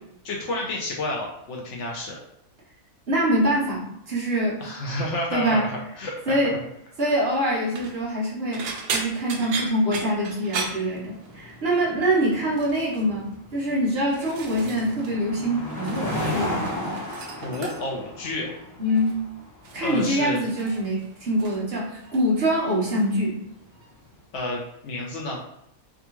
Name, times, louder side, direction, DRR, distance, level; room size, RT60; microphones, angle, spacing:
voice 1, 0.2-2.2 4.6-6.4 17.4-18.5 19.8-20.4 24.3-25.4, left 1 dB, 65° left, -1 dB, 0.8 m, -30 dB
voice 2, 3.1-4.6 5.3-5.7 6.3-6.5 7.0-8.6 8.9-17.0 18.8-19.2 19.7-23.4, equal, 50° right, -5 dB, 1.1 m, -24 dB
sound 1, 7.6-8.0 8.5-11.6 11.8-12.2 12.5-13.1 13.7-15.1 15.4-16.3 16.5-18.1 18.9-19.2 19.6-21.7 22.0-22.5 22.9-23.1 24.3-24.4, right 4 dB, 65° right, 0.6 m, -36 dB
sound 2, 10.5-24.0, left 1 dB, 20° left, 0.5 m, -36 dB
3.5 x 2.3 x 2.9 m, 0.77 s
omnidirectional pair, 1.5 m